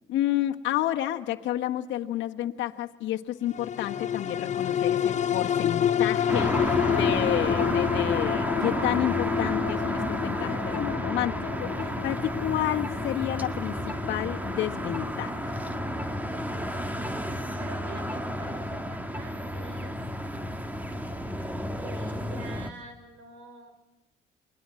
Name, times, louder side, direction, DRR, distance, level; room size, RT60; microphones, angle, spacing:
voice 1, 0.1-15.5, left 13 dB, 75° left, 2 dB, 1.5 m, -30 dB
sound 1, 3.5-18.2 18.6-18.7, left 9 dB, 35° left, 0.8 m, -29 dB
sound 2, 6.3-22.7, equal, 10° right, 1.8 m, -31 dB
voice 2, 17.6-20.0 21.8-23.7, right 4 dB, 85° right, 9 dB, 6.3 m, -46 dB
29.0 x 22.0 x 7.7 m, 1.0 s
cardioid pair, 110°, 19 cm